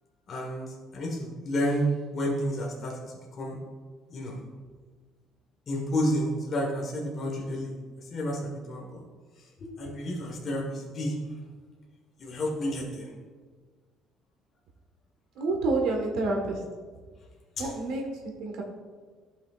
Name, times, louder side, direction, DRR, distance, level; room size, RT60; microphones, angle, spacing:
voice 1, 0.3-1.8 2.1-3.0 3.3-3.6 4.1-4.4 5.7-7.7 8.1-9.0 9.6-11.1 12.2-13.1 17.6-17.7, equal, 30° left, -2 dB, 1.3 m, -31 dB
voice 2, 15.3-16.6 17.6-18.0 18.4-18.6, right 3 dB, 70° right, 1 dB, 1.4 m, -28 dB
14.5 x 5.8 x 2.4 m, 1.5 s
cardioid pair, 180°, 0 cm